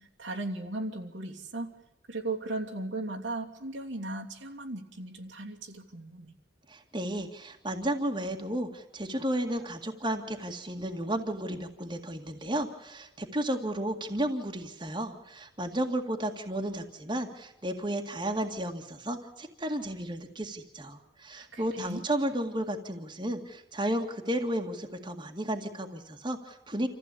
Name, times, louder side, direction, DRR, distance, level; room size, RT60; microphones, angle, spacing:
voice 1, 0.0-1.7 2.1-6.3 21.4-22.0, right 2 dB, 85° right, 0 dB, 2.9 m, -37 dB
voice 2, 6.7-26.9, right 1 dB, 25° right, 3 dB, 2.0 m, -33 dB
27.0 x 15.5 x 8.5 m, 0.96 s
head